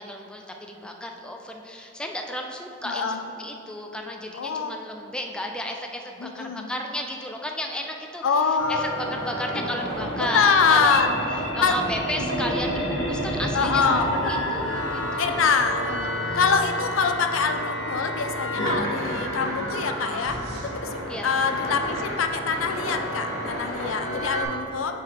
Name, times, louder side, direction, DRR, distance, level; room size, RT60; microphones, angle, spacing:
voice 1, 0.0-11.0 11.5-13.8 14.2-15.6 16.1-16.4 21.1-21.3 24.3-24.5, left 1 dB, 5° left, 2 dB, 0.3 m, -33 dB
voice 2, 2.8-3.2 4.3-4.7 6.2-6.7 8.2-8.9 10.2-11.1 11.6-11.8 13.5-14.4 15.2-25.0, left 5 dB, 75° left, 7 dB, 0.4 m, -24 dB
sound 1, 8.6-24.4, equal, 90° left, 1.4 m, -30 dB
sound 2, 17.4-20.9, right 2 dB, 50° right, 1.0 m, -40 dB
7.3 x 3.8 x 4.6 m, 2.7 s
head